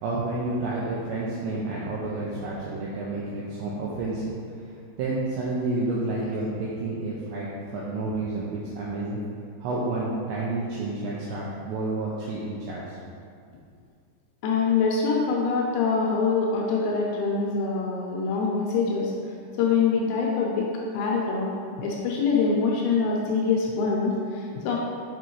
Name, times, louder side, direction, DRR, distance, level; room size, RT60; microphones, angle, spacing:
voice 1, 0.0-4.2 4.6-9.2 9.6-13.0, right 2 dB, 85° right, -6 dB, 2.5 m, -30 dB
voice 2, 14.4-19.1 19.6-20.7 20.9-21.5 21.8-24.8, left 5 dB, 85° left, -2 dB, 2.8 m, -24 dB
6.9 x 5.0 x 3.0 m, 2.3 s
omnidirectional pair, 5.7 m